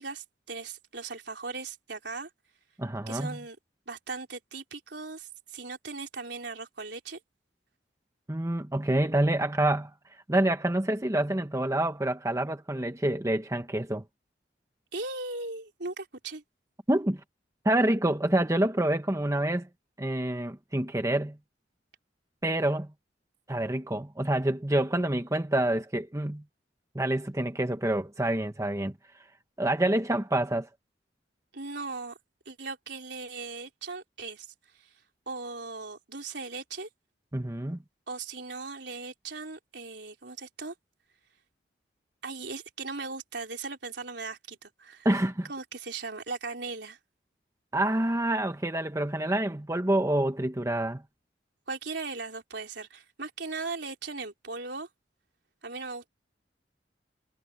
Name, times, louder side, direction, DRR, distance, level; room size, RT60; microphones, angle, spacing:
voice 1, 0.0-2.3 3.1-3.6 3.9-7.2 14.9-16.4 31.5-32.2 32.5-34.5 34.8-34.9 35.3-36.9 38.1-40.7 42.2-45.1 45.5-47.0 51.7-54.9 55.6-56.1, right 3 dB, 70° right, 4.0 m, -38 dB
voice 2, 2.8-3.4 8.3-9.9 10.3-14.0 16.9-17.2 17.6-19.7 20.0-21.4 22.4-22.9 23.5-26.4 26.9-28.9 29.6-30.7 37.3-37.8 45.0-45.5 47.7-51.0, right 1 dB, 15° right, 1.0 m, -27 dB
head